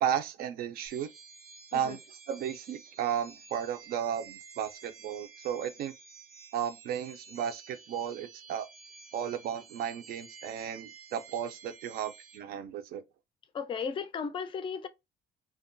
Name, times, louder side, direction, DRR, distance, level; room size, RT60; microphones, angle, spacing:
voice 1, 0.0-1.1 1.7-2.0 2.3-5.9 6.5-8.7 9.1-13.0, right 9 dB, 65° right, 0.4 m, -34 dB
sound 1, 0.9-12.4, right 5 dB, 85° right, 0.8 m, -52 dB
voice 2, 13.5-14.9, left 6 dB, 30° left, 0.3 m, -35 dB
2.4 x 2.2 x 2.5 m
cardioid pair, 110°, 17 cm